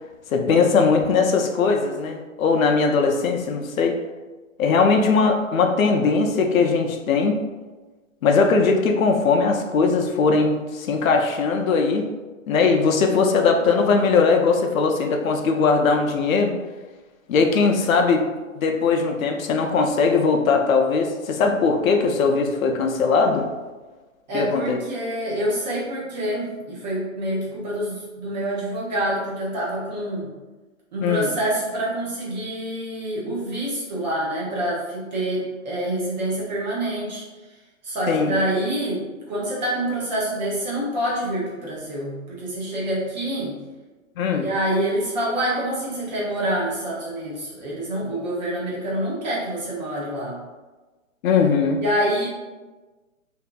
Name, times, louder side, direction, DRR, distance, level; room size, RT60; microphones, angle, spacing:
voice 1, 0.3-4.0 4.6-7.4 8.2-12.1 12.5-16.5 17.3-18.2 18.6-23.5 24.3-24.8 31.0-31.3 38.1-38.4 44.2-44.5 51.2-51.8, left 4 dB, 75° left, 3 dB, 0.5 m, -20 dB
voice 2, 24.3-30.3 30.9-37.2 37.8-43.6 44.3-50.4 51.8-52.3, right 1 dB, 30° right, -5 dB, 0.7 m, -26 dB
2.6 x 2.4 x 2.2 m, 1.2 s
hypercardioid pair, 155°, 41 cm